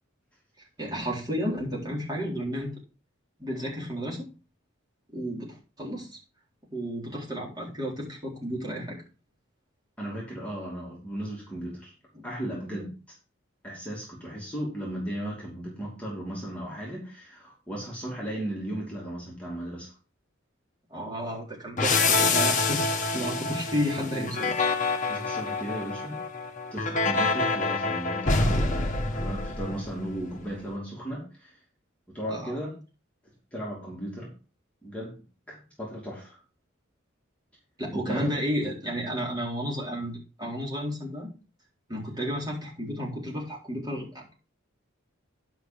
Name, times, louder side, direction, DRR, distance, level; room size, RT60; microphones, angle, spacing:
voice 1, 0.8-2.8 3.4-4.3 5.1-6.2 6.7-9.0 12.1-12.3 20.9-22.8 23.1-24.5 32.3-32.6 37.8-41.3 41.9-44.2, equal, 20° right, -4 dB, 4.0 m, -32 dB
voice 2, 10.0-11.9 12.2-12.9 13.6-19.9 25.1-26.2 26.7-31.6 32.1-32.8 33.5-34.3 34.8-35.1 35.5-36.4 37.9-38.3, right 1 dB, 5° left, -5 dB, 2.7 m, -36 dB
sound 1, 21.8-30.2, left 3 dB, 40° left, 1.3 m, -26 dB
10.5 x 5.8 x 5.2 m, 0.34 s
head